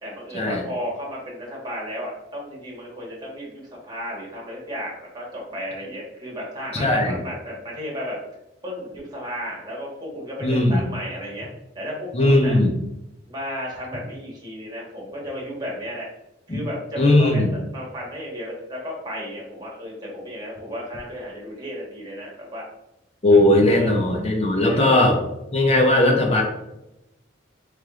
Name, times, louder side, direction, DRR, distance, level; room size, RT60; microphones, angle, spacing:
voice 1, 0.0-8.2 8.6-11.5 11.7-12.6 13.3-16.1 16.5-22.6 23.3-24.0 24.6-24.9, equal, 20° right, -3 dB, 1.4 m, -33 dB
voice 2, 6.7-7.2 10.4-10.8 12.1-12.7 16.5-16.6 17.0-17.5 23.2-25.2 25.5-26.4, left 1 dB, 35° left, 1 dB, 0.9 m, -18 dB
3.6 x 3.2 x 3.7 m, 0.88 s
head